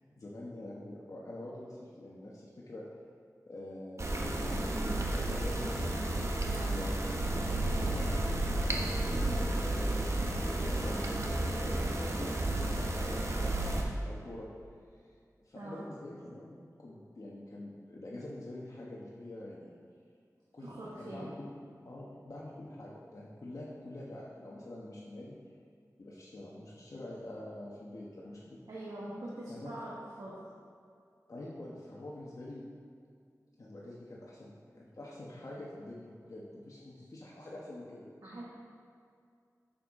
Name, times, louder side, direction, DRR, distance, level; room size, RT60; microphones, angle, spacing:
voice 1, 0.2-2.8 3.5-5.9 6.7-10.1 10.4-11.0 11.2-14.5 15.5-19.7 20.5-21.5 21.8-25.3 26.0-28.6 29.5-29.7 31.3-32.6 33.6-38.3, left 1 dB, 60° left, -6 dB, 1.1 m, -46 dB
sound 1, 4.0-13.8, right 1 dB, 50° right, 1.0 m, -32 dB
voice 2, 20.6-21.3 28.7-30.4 38.2-38.4, right 1 dB, 85° right, -7 dB, 1.4 m, -43 dB
9.2 x 6.3 x 3.7 m, 2.3 s
wide cardioid pair, 65°, 6 cm